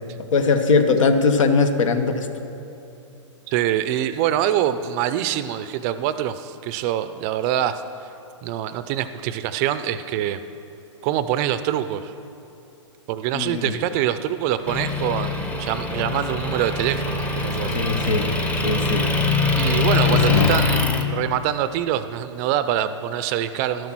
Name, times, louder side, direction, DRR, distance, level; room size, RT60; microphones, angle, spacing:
voice 1, 0.3-2.3 13.3-13.8 17.7-18.3 18.6-19.1 20.1-20.5, left 4 dB, 80° left, 8 dB, 1.2 m, -20 dB
voice 2, 3.5-7.8 8.4-10.4 11.0-12.1 13.1-17.7 19.5-23.9, right 11 dB, 30° right, 12 dB, 0.5 m, -25 dB
Motor vehicle (road) / Engine, 14.7-21.0, left 4 dB, 10° left, 0.7 m, -23 dB
12.5 x 9.4 x 6.1 m, 2.8 s
hypercardioid pair, 140°, 16 cm